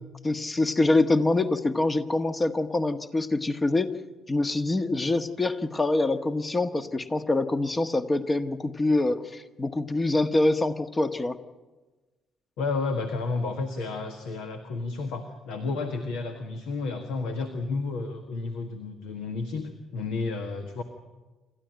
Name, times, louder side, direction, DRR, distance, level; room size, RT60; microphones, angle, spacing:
voice 1, 0.2-3.9 4.3-11.4, left 2 dB, 25° left, 9 dB, 1.4 m, -25 dB
voice 2, 12.6-20.8, left 3 dB, 65° left, 6 dB, 1.6 m, -31 dB
27.5 x 13.5 x 9.2 m, 1.2 s
figure-of-eight pair, 50°, 0 cm